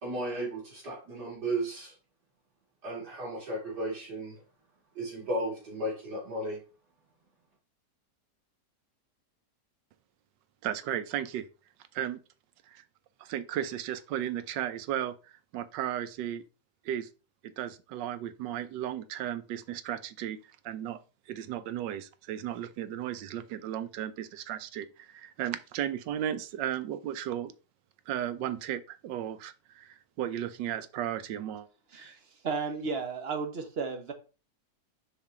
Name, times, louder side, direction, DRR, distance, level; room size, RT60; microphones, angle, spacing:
voice 1, 0.0-1.9 2.8-4.4 4.9-6.6, right 1 dB, 70° right, 3.2 m, -34 dB
voice 2, 10.6-11.5 11.9-12.2 12.7-12.8 13.2-15.2 15.5-16.4 16.9-17.1 17.4-20.4 20.6-21.0 21.3-27.5 28.1-31.7, right 10 dB, 90° right, 1.3 m, -35 dB
voice 3, 31.9-34.1, right 5 dB, 40° right, 1.1 m, -34 dB
6.7 x 4.8 x 3.6 m
omnidirectional pair, 1.9 m